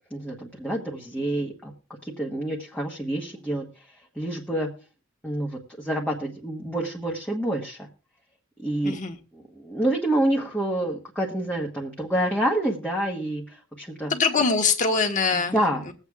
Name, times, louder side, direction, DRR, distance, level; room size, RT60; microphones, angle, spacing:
voice 1, 0.1-1.7 2.0-3.9 4.1-4.7 5.2-7.8 8.6-9.0 9.3-14.1 15.3-15.9, right 1 dB, 5° left, -2 dB, 1.2 m, -28 dB
voice 2, 8.8-9.2 14.1-15.6 15.9-16.0, left 4 dB, 40° left, 4 dB, 1.4 m, -23 dB
22.0 x 8.0 x 2.4 m, 0.36 s
head